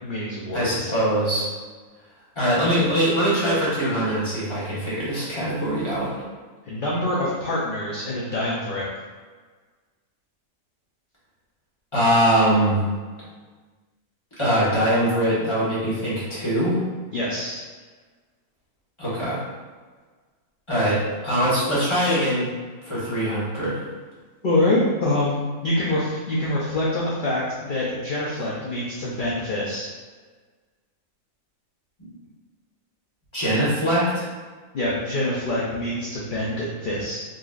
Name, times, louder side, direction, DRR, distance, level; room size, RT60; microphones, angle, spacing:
voice 1, 0.0-0.9 6.7-8.8 17.1-17.7 24.4-29.9 34.7-37.2, left 1 dB, 60° left, -6 dB, 0.5 m, -25 dB
voice 2, 0.5-1.5 2.3-6.1 11.9-12.8 14.4-16.8 19.0-19.4 20.7-22.5 22.9-23.8 32.0-32.1 33.3-34.3, equal, 20° left, -11 dB, 1.3 m, -22 dB
4.0 x 2.9 x 2.4 m, 1.4 s
omnidirectional pair, 1.6 m